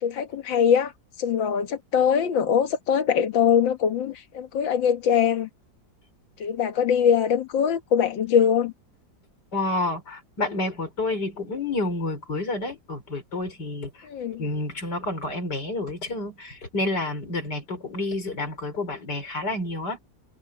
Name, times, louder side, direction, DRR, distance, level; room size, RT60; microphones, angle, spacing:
voice 1, 0.0-0.9 1.2-5.5 6.4-8.7 14.0-14.4, left 8 dB, 85° left, 2.1 m, -22 dB
voice 2, 9.5-14.1 14.4-20.0, left 2 dB, 60° left, 5.3 m, -29 dB
omnidirectional pair, 2.0 m